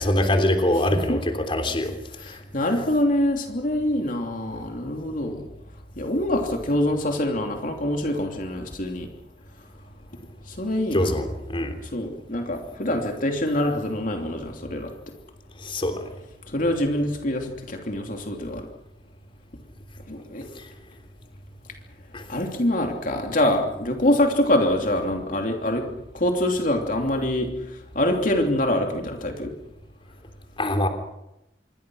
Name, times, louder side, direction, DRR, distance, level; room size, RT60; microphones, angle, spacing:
voice 1, 0.0-1.9 2.2-2.4 10.9-11.7 15.6-16.1 20.5-20.7 22.1-22.2 30.6-30.9, left 1 dB, 30° left, 5 dB, 3.3 m, -24 dB
voice 2, 0.9-1.2 2.2-5.4 6.0-9.1 10.5-11.3 11.9-14.9 16.5-18.7 20.1-20.5 22.3-25.9 26.1-27.5 27.9-29.5, left 1 dB, 50° left, 3 dB, 3.0 m, -25 dB
27.0 x 23.0 x 6.4 m, 0.87 s
head